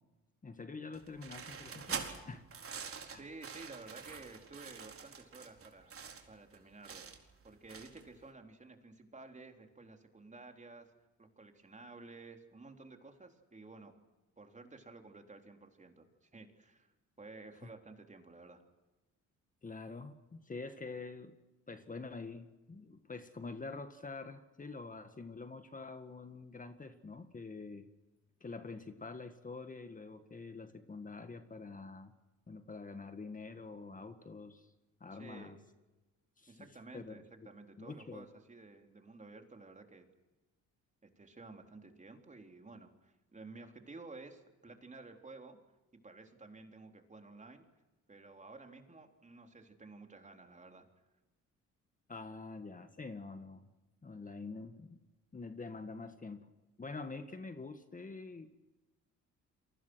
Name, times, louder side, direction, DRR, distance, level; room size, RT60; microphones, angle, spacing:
voice 1, 0.4-2.5 3.1-3.2 17.6-17.7 19.6-21.4 21.7-27.9 28.4-32.1 32.5-34.7 35.0-35.6 36.4-36.7 36.9-37.2 37.8-38.3 52.1-53.7 54.0-55.0 55.3-56.5 56.8-58.7, left 3 dB, 25° left, 8 dB, 1.8 m, -46 dB
sound 1, 0.9-8.2, right 6 dB, 45° right, 4.5 m, -45 dB
voice 2, 3.0-6.0 6.3-7.0 7.4-10.9 11.2-13.9 14.4-16.9 17.2-18.6 35.1-35.6 36.5-40.1 41.0-45.6 45.9-47.7 48.1-50.9, right 3 dB, 25° right, 4 dB, 3.8 m, -53 dB
29.0 x 24.0 x 6.4 m, 1.1 s
cardioid pair, 90°, 30 cm